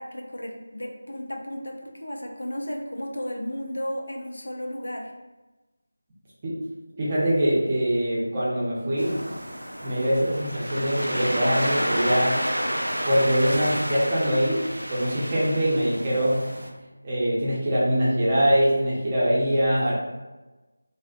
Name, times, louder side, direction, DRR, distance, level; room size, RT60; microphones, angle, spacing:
voice 1, 0.0-5.1 19.8-20.0, equal, 70° left, 2 dB, 0.4 m, -34 dB
voice 2, 7.0-9.2 9.8-12.5 13.0-16.6 17.0-20.0, equal, 25° right, -8 dB, 0.6 m, -23 dB
Waves surf, 9.0-16.7, equal, 85° right, 0.4 m, -30 dB
2.4 x 2.4 x 2.3 m, 1.1 s
figure-of-eight pair, 165°, 0 cm